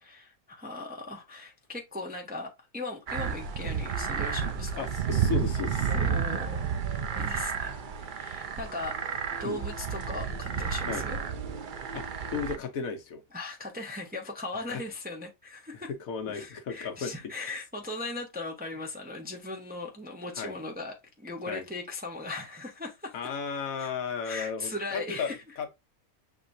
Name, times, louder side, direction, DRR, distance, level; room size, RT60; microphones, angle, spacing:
voice 1, 0.0-4.8 5.9-9.0 9.4-11.2 13.3-15.9 16.3-23.1 23.8-23.9 24.2-25.4, left 2 dB, 10° right, 0.7 m, -38 dB
sound 1, 3.1-12.6, right 7 dB, 75° right, 0.4 m, -31 dB
voice 2, 4.7-5.9 9.4-9.6 10.9-11.0 11.9-13.2 14.5-14.8 15.7-17.1 20.3-20.5 21.5-21.6 23.1-25.7, left 6 dB, 70° left, 1.2 m, -34 dB
6.7 x 2.9 x 2.6 m
omnidirectional pair, 1.6 m